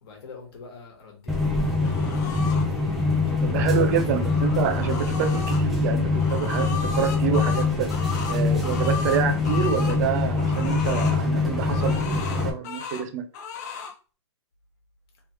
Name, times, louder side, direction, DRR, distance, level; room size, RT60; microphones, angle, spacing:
voice 1, 0.0-3.0 3.2-5.2, left 4 dB, 55° left, 1.5 m, -46 dB
sound 1, 1.3-12.5, left 3 dB, ahead, 0.5 m, -24 dB
sound 2, 1.8-2.7 4.0-5.6 6.1-10.0 10.4-11.2 11.6-13.1 13.3-13.9, left 5 dB, 35° left, 0.7 m, -35 dB
voice 2, 3.4-7.9 8.3-13.3, right 8 dB, 35° right, 0.7 m, -27 dB
3.3 x 2.9 x 3.1 m
hypercardioid pair, 155°, 15 cm